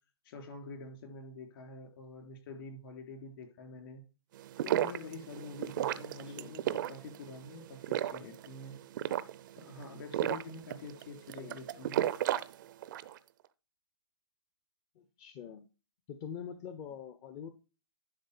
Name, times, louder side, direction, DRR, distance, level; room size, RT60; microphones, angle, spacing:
voice 1, 0.2-4.0 4.6-8.8 9.6-12.0, left 3 dB, 50° left, 5 dB, 3.4 m, -46 dB
sound 1, 4.4-13.2, right 12 dB, 45° right, 0.5 m, -35 dB
voice 2, 14.9-15.6 16.1-17.5, left 8 dB, 30° left, 9 dB, 0.7 m, -44 dB
11.0 x 3.8 x 6.8 m, 0.34 s
hypercardioid pair, 135°, 15 cm